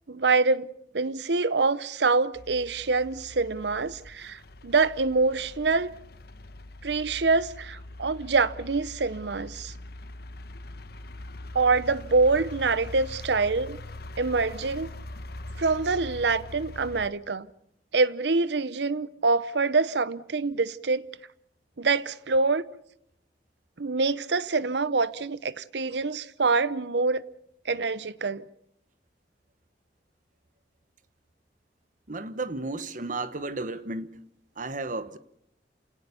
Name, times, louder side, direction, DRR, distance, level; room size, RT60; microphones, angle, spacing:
voice 1, 0.1-0.7 0.9-5.9 6.8-9.7 11.5-13.8 14.2-14.9 15.6-17.5 17.9-21.1 21.8-22.6 23.8-27.2 27.6-28.4, right 3 dB, 70° right, 0.8 m, -25 dB
sound 1, 2.3-17.1, left 1 dB, 60° left, 1.1 m, -42 dB
voice 2, 32.1-34.1 34.6-35.2, right 2 dB, 45° right, 1.2 m, -33 dB
28.0 x 18.0 x 7.0 m
head